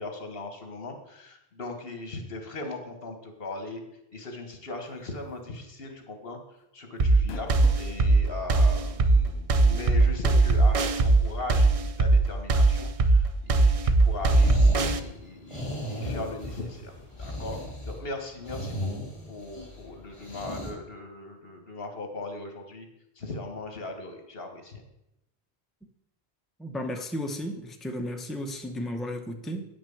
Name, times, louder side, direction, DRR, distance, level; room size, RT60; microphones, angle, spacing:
voice 1, 0.0-3.8 4.1-6.4 6.7-17.6 17.9-22.9 23.2-24.8, left 2 dB, 65° left, 5 dB, 1.7 m, -39 dB
sound 1, 5.3-5.6 5.9-6.0 7.0-7.9 8.7-8.8 10.4-10.5, left 4 dB, 85° left, 1.2 m, -43 dB
sound 2, 7.0-15.0, right 3 dB, 40° right, 0.6 m, -20 dB
sound 3, 14.0-20.7, left 1 dB, 30° left, 2.8 m, -35 dB
voice 2, 26.6-29.7, equal, ahead, 4 dB, 0.8 m, -34 dB
9.1 x 6.1 x 7.0 m, 0.86 s
omnidirectional pair, 1.0 m